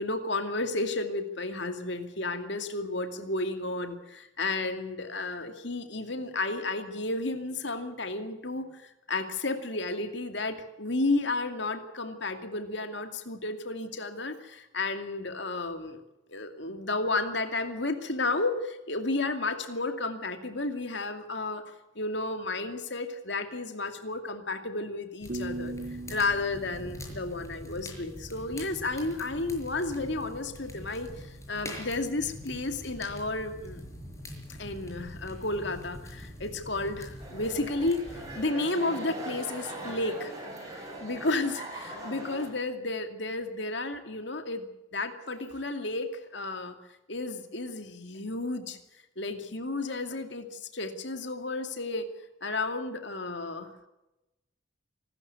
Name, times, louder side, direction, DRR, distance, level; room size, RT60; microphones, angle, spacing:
voice 1, 0.0-16.0 16.3-21.6 22.0-25.7 26.1-33.8 34.6-38.0 38.3-40.3 41.0-46.7 47.1-48.8 49.2-52.1 52.4-53.7, left 2 dB, 60° left, 7 dB, 2.4 m, -32 dB
sound 1, 25.2-38.4, left 1 dB, 15° left, 5.6 m, -44 dB
sound 2, 25.3-28.2, right 2 dB, 45° right, 0.7 m, -40 dB
sound 3, 37.2-42.5, right 1 dB, 15° right, 7.3 m, -41 dB
26.5 x 13.5 x 8.4 m, 0.97 s
head